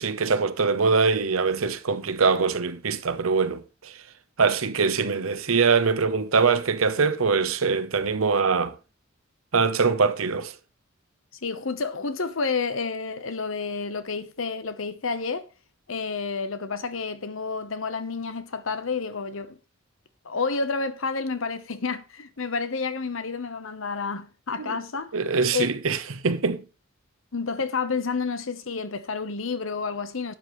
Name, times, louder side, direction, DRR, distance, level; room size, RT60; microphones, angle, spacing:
voice 1, 0.0-3.9 4.4-8.7 9.5-10.5 24.6-24.7 25.1-26.6, right 5 dB, 80° right, 0.9 m, -23 dB
voice 2, 11.4-15.5 15.9-19.6 20.2-25.1 25.5-25.7 27.3-30.3, left 4 dB, 70° left, 1.0 m, -30 dB
12.0 x 8.7 x 3.1 m
head